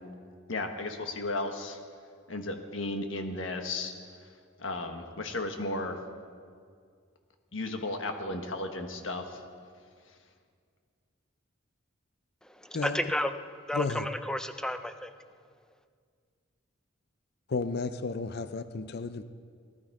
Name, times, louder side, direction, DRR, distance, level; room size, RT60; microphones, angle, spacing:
voice 1, 0.5-1.8 2.3-3.9 4.6-5.9 7.5-9.2, left 2 dB, 75° left, 5 dB, 1.4 m, -34 dB
voice 2, 12.4-13.3 13.7-15.1, left 1 dB, 5° left, 9 dB, 0.5 m, -32 dB
voice 3, 13.7-14.1 17.5-19.2, left 4 dB, 55° left, 12 dB, 0.5 m, -32 dB
18.5 x 12.0 x 4.8 m, 2.1 s
head